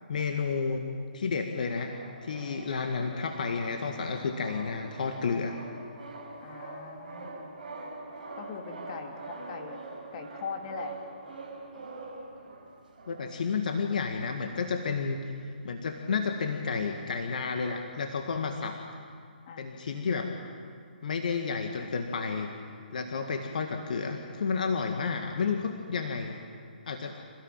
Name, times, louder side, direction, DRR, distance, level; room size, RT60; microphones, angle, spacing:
voice 1, 0.1-0.9 1.1-1.9 2.2-5.6 13.1-15.3 15.6-18.8 19.6-20.3 21.0-22.5 22.9-26.4 26.9-27.2, left 5 dB, 55° left, 4 dB, 1.9 m, -31 dB
sound 1, 1.9-13.6 14.2-14.3 14.4-14.6 15.1-16.4 16.7-18.5, right 2 dB, 55° right, 7.0 m, -44 dB
voice 2, 6.4-7.5 8.3-9.8 10.1-10.9 19.5-19.7, left 5 dB, 35° left, 3 dB, 2.6 m, -40 dB
27.5 x 16.5 x 9.1 m, 2.2 s
figure-of-eight pair, 135°, 5 cm